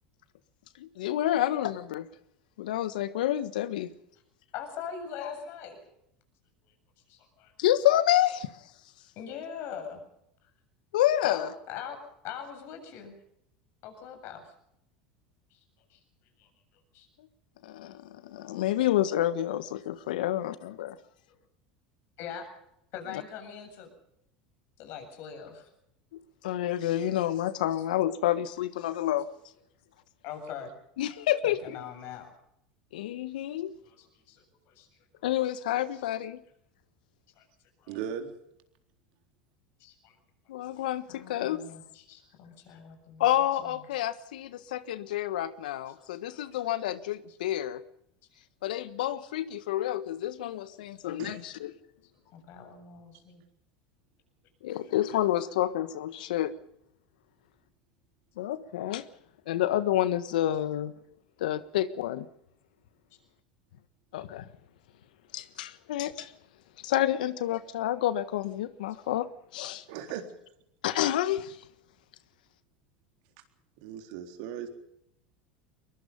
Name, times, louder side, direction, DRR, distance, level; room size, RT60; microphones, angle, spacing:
voice 1, 0.8-2.1 2.6-3.9 5.2-5.3 7.6-8.5 10.9-11.5 17.6-20.9 26.1-29.3 31.0-31.8 32.9-33.7 35.2-36.4 40.5-41.6 43.2-47.8 48.6-51.7 54.6-56.5 58.4-59.0 59.5-60.9 61.4-62.3 64.1-64.5 65.3-66.3 66.8-69.3 69.5-69.8 70.8-71.6, left 13 dB, 75° left, 1.4 m, -29 dB
voice 2, 4.5-5.8 7.1-7.5 9.2-10.0 11.2-12.0 12.2-13.1 13.8-14.5 15.9-16.0 16.4-16.5 16.9-17.1 22.2-22.5 22.9-23.9 24.8-25.7 30.2-30.7 31.4-32.3 33.8-34.9 35.1-35.3 35.9-36.0 37.4-37.5 37.8-38.0 39.8-40.1 41.1-43.2 43.6-43.7 46.0-46.4 52.3-53.4, left 8 dB, 60° left, 7.5 m, -42 dB
voice 3, 37.9-38.3 51.2-51.4 69.9-70.2 73.8-74.7, right 9 dB, 65° right, 3.9 m, -37 dB
22.5 x 22.5 x 5.4 m
hypercardioid pair, 90°, 5 cm